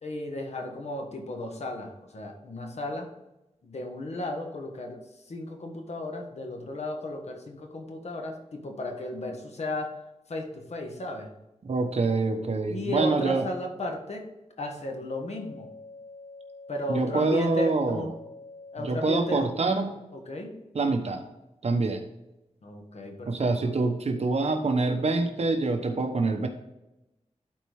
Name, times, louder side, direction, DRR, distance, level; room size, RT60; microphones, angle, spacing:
voice 1, 0.0-3.1 3.6-11.3 12.7-14.3 14.6-15.7 16.7-18.1 18.7-19.5 20.1-20.6 22.6-23.5, left 1 dB, 65° left, 3 dB, 1.6 m, -34 dB
voice 2, 11.6-13.4 16.9-18.0 18.8-20.0 20.7-21.2 21.6-22.0 23.3-26.5, right 3 dB, 65° right, 5 dB, 1.1 m, -25 dB
sound 1, 14.8-19.7, left 3 dB, 40° left, 1.4 m, -48 dB
12.0 x 4.4 x 3.6 m, 0.96 s
wide cardioid pair, 110°, 12 cm